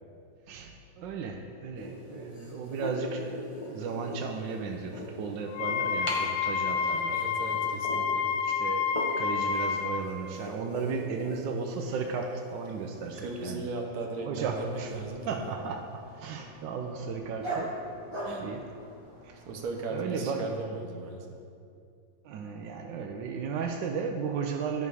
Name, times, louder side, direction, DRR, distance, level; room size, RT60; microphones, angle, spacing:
voice 1, 0.5-7.2 8.2-13.7 14.3-14.9 15.3-17.8 18.4-18.6 19.2-19.4 19.9-20.4 22.2-24.9, right 5 dB, 85° right, 3 dB, 1.3 m, -35 dB
sound 1, 1.8-13.6, equal, 20° left, 0.9 m, -41 dB
Wind instrument woodwind instrument, 5.5-10.0, left 6 dB, 80° left, 0.7 m, -29 dB
voice 2, 6.9-8.3 13.0-15.4 18.2-18.5 19.5-21.3, right 3 dB, 60° right, 1 dB, 1.4 m, -37 dB
Dog, 14.3-19.6, right 2 dB, 15° right, 1.4 m, -41 dB
11.5 x 5.3 x 4.8 m, 2.4 s
omnidirectional pair, 2.0 m